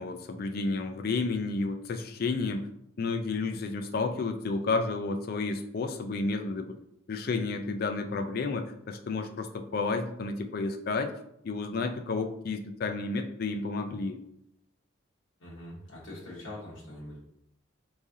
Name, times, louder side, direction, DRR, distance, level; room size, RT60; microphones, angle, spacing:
voice 1, 0.0-2.7 3.0-6.8 7.1-11.1 11.4-14.2, left 3 dB, 45° left, 7 dB, 0.3 m, -31 dB
voice 2, 15.4-17.2, left 1 dB, 70° left, -6 dB, 1.2 m, -43 dB
3.6 x 3.2 x 2.6 m, 0.77 s
head